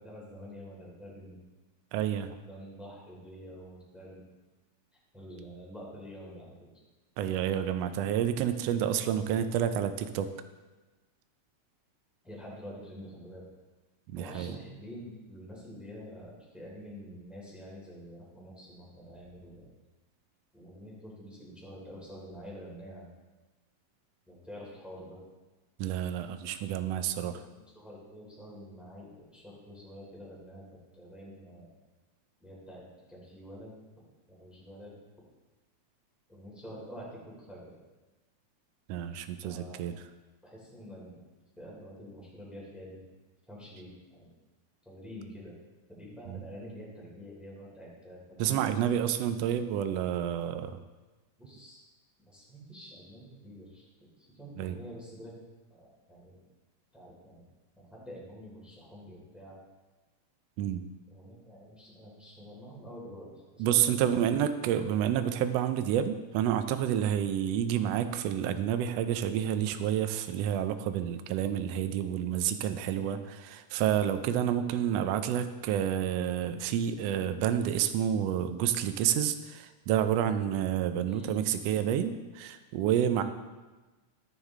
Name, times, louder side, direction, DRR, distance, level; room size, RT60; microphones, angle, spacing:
voice 1, 0.0-1.4 2.4-4.2 5.1-6.6 12.2-13.4 14.2-19.7 20.5-23.1 24.3-25.2 27.5-30.6 30.9-31.7 32.4-33.7 34.3-35.0 36.3-37.8 39.4-39.8 40.4-41.2 41.6-43.0 43.5-44.3 44.8-45.5 45.9-48.8 51.4-51.8 52.3-55.3 55.7-56.4 56.9-57.4 57.8-59.6 61.1-64.4 72.8-73.1 81.1-81.6 83.1-83.2, equal, ahead, -5 dB, 2.7 m, -47 dB
voice 2, 1.9-2.3 7.2-10.3 14.1-14.5 25.8-27.4 38.9-39.9 46.3-46.4 48.4-50.8 54.6-54.8 60.6-60.8 63.6-73.2 73.4-83.2, right 10 dB, 75° right, 9 dB, 1.6 m, -29 dB
13.0 x 7.3 x 3.7 m, 1.2 s
omnidirectional pair, 3.3 m